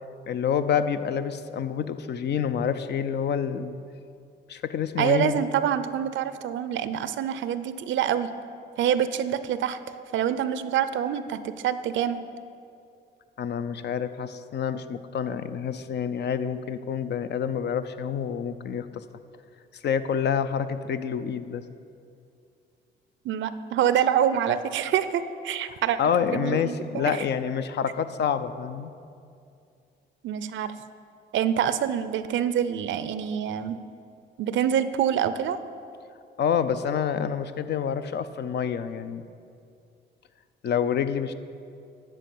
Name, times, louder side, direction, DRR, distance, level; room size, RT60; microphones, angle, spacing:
voice 1, 0.3-3.8 4.5-5.4 13.4-19.0 19.7-21.6 25.6-28.9 36.4-39.2 40.6-41.3, left 8 dB, 60° left, 11 dB, 0.6 m, -28 dB
voice 2, 5.0-8.3 8.8-9.8 10.1-12.2 23.2-26.0 26.3-27.2 30.2-30.7 31.3-33.8 34.4-35.6, right 9 dB, 70° right, 13 dB, 0.6 m, -26 dB
12.5 x 4.5 x 8.4 m, 2.4 s
cardioid pair, 90°, 20 cm